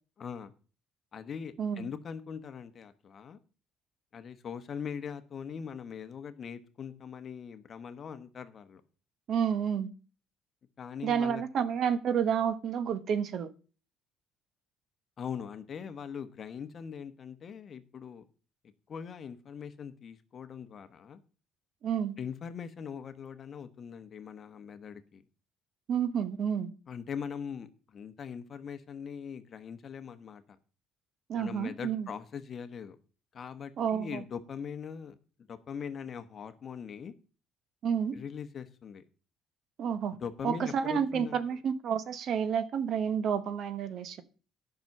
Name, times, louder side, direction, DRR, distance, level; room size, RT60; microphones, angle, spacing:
voice 1, 0.2-0.5 1.1-3.4 4.1-8.8 10.8-11.7 15.2-18.2 18.9-21.2 22.2-25.2 26.9-30.6 31.3-33.0 33.3-35.2 35.5-37.1 38.1-39.0 40.2-41.4, left 7 dB, 40° left, 1.1 m, -41 dB
voice 2, 9.3-9.9 11.0-13.5 21.8-22.2 25.9-26.7 31.3-32.1 33.8-34.2 37.8-38.2 39.8-40.2 40.4-44.2, right 7 dB, 55° right, 1.0 m, -30 dB
10.5 x 5.9 x 6.7 m
cardioid pair, 115°, 0 cm